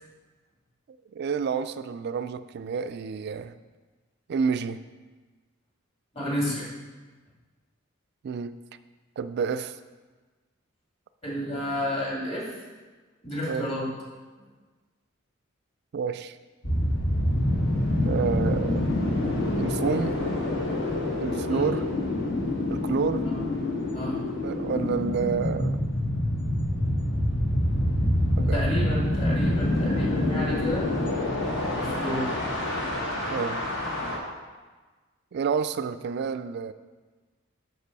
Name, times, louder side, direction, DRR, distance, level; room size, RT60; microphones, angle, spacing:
voice 1, 1.1-3.5 4.3-4.8 8.2-8.6 9.2-9.8 13.5-13.7 15.9-16.4 18.0-18.9 19.6-20.2 21.2-21.9 22.7-23.3 24.4-25.8 28.4-28.7 33.3-33.6 35.3-36.7, right 6 dB, 50° right, 13 dB, 0.3 m, -29 dB
voice 2, 6.1-6.7 11.2-12.5 13.2-13.9 21.5-21.7 23.2-23.4 23.9-24.3 28.5-30.9 31.8-32.3, equal, 30° left, -5 dB, 2.2 m, -31 dB
sound 1, 16.6-34.2, left 1 dB, 60° left, 1.3 m, -26 dB
6.6 x 6.0 x 4.7 m, 1.3 s
head